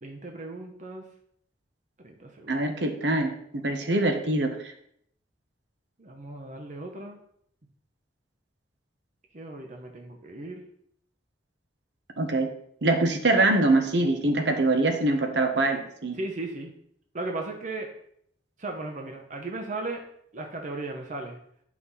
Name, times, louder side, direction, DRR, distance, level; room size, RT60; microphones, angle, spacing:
voice 1, 0.0-1.0 2.0-2.6 6.0-7.2 9.3-10.6 16.1-16.7 17.1-17.9 18.6-20.0 20.3-21.4, right 2 dB, 40° right, 3 dB, 0.9 m, -36 dB
voice 2, 2.5-4.6 12.2-12.5 12.8-16.2, right 2 dB, 65° right, 5 dB, 1.1 m, -24 dB
9.4 x 5.9 x 4.1 m, 0.70 s
head